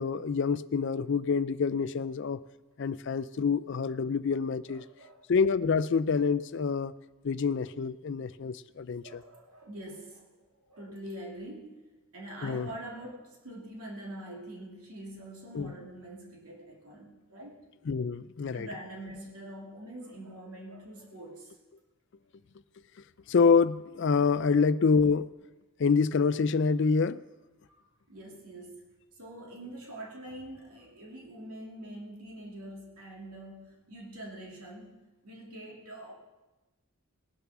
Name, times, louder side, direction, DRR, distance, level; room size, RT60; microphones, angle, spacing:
voice 1, 0.0-2.4 2.8-4.8 5.3-6.9 7.2-9.2 12.4-12.7 15.5-15.7 17.9-18.7 23.3-25.3 25.8-27.2, left 5 dB, 55° left, 14 dB, 0.4 m, -26 dB
voice 2, 4.7-5.2 9.0-10.3 10.7-11.9 12.1-17.6 18.5-21.6 27.7-27.8 28.1-35.0 35.2-36.1, right 1 dB, 80° right, -2 dB, 2.6 m, -44 dB
20.0 x 6.9 x 6.0 m, 1.1 s
head